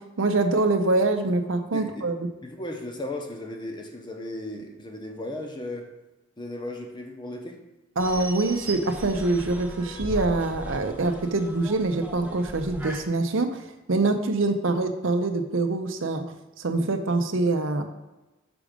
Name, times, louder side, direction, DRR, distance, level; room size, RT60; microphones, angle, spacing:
voice 1, 0.0-2.3 8.0-16.2 16.6-17.9, right 2 dB, 70° right, 7 dB, 0.7 m, -25 dB
voice 2, 1.7-2.1 2.4-5.9 6.4-7.6, left 1 dB, 20° left, 3 dB, 0.8 m, -36 dB
sound 1, 8.0-13.0, right 1 dB, 5° right, 0.6 m, -38 dB
6.0 x 5.0 x 5.0 m, 1.0 s
head